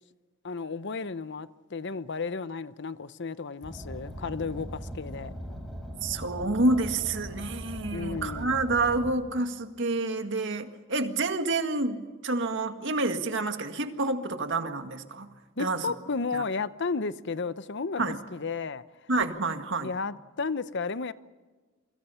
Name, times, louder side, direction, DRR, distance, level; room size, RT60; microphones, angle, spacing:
voice 1, 0.4-5.3 7.9-8.6 15.6-18.8 19.8-21.1, left 4 dB, 60° left, 0.8 m, -33 dB
Car, 3.6-9.1, equal, ahead, 5.4 m, -40 dB
voice 2, 6.0-15.3 15.6-15.9 16.3-16.4 18.0-18.2 19.1-19.9, right 2 dB, 65° right, 1.9 m, -28 dB
28.5 x 25.0 x 5.7 m
head